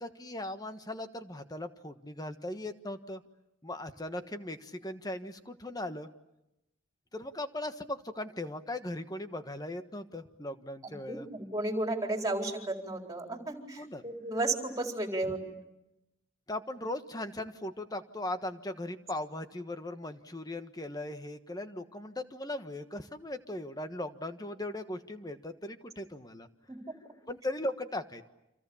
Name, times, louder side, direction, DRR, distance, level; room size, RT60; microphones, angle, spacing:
voice 1, 0.0-3.2 3.6-6.1 7.1-11.3 13.8-14.0 15.2-15.3 16.5-26.5 27.3-28.2, left 1 dB, 20° left, 8 dB, 1.4 m, -38 dB
voice 2, 10.8-15.6 26.7-26.8, right 2 dB, 15° right, 3 dB, 4.2 m, -34 dB
29.5 x 27.0 x 7.2 m, 0.91 s
head